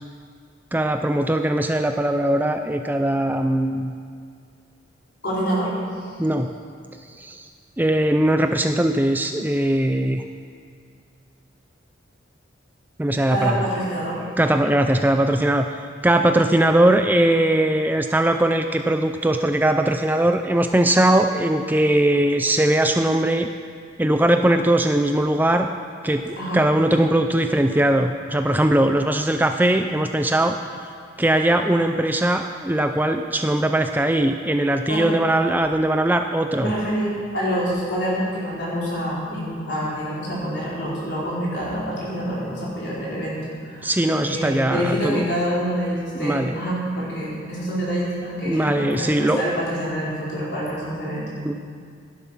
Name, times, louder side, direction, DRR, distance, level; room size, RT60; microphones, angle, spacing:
voice 1, 0.7-3.9 6.2-6.5 7.2-7.5 7.8-10.2 13.0-13.6 14.4-23.5 24.0-25.7 26.0-30.6 31.2-36.7 43.8-45.4 46.2-46.5 48.5-49.6 51.4-51.5, right 1 dB, 10° right, 6 dB, 0.4 m, -20 dB
voice 2, 5.2-5.7 13.3-14.2 26.4-26.6 34.9-35.1 36.6-43.9 44.2-51.3, equal, 60° left, -6 dB, 4.7 m, -26 dB
16.0 x 11.0 x 5.7 m, 2.3 s
head